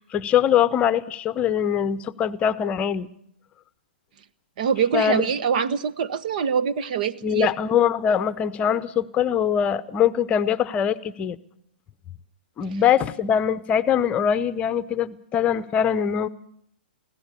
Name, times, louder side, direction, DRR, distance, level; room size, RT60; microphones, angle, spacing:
voice 1, 0.0-3.1 4.9-5.3 7.2-11.4 12.6-16.3, left 8 dB, 25° left, 15 dB, 0.8 m, -22 dB
voice 2, 4.6-7.5, right 7 dB, 55° right, 15 dB, 1.1 m, -24 dB
24.0 x 16.5 x 8.4 m, 0.70 s
hypercardioid pair, 125°, 5 cm